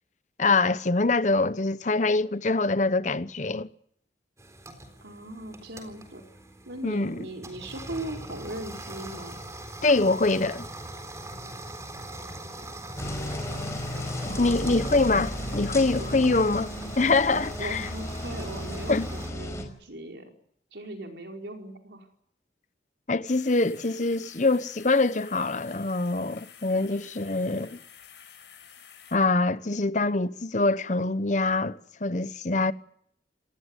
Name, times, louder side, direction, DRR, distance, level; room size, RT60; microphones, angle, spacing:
voice 1, 0.4-3.7 6.8-7.2 9.8-10.7 14.4-16.7 17.0-17.9 18.9-19.1 23.1-27.8 29.1-32.7, left 3 dB, 45° left, 0.9 m, -24 dB
sound 1, 4.4-19.3, right 1 dB, 15° right, 3.8 m, -42 dB
voice 2, 5.0-6.2 6.6-9.4 14.3-14.9 15.8-16.4 17.3-20.3 20.7-22.1, right 1 dB, 80° right, 4.8 m, -39 dB
sound 2, 13.0-19.6, left 1 dB, 15° left, 4.8 m, -34 dB
sound 3, 23.3-29.2, left 8 dB, 85° left, 7.8 m, -50 dB
27.0 x 19.5 x 8.1 m
head